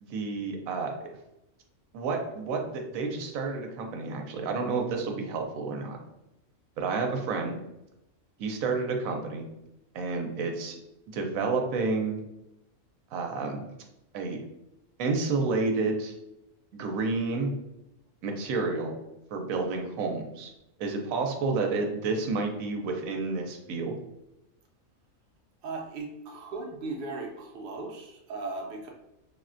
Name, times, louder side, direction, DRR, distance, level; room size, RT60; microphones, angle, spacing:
voice 1, 0.0-1.0 1.9-6.0 6.8-7.6 8.4-9.5 9.9-10.8 11.1-12.2 13.1-13.7 14.1-14.4 15.0-16.1 16.7-17.5 18.2-19.0 19.3-20.5 20.8-23.9, right 3 dB, 85° right, 3 dB, 1.0 m, -30 dB
voice 2, 25.6-28.9, right 3 dB, 55° right, 0 dB, 0.6 m, -37 dB
3.6 x 2.1 x 2.5 m, 0.88 s
omnidirectional pair, 1.4 m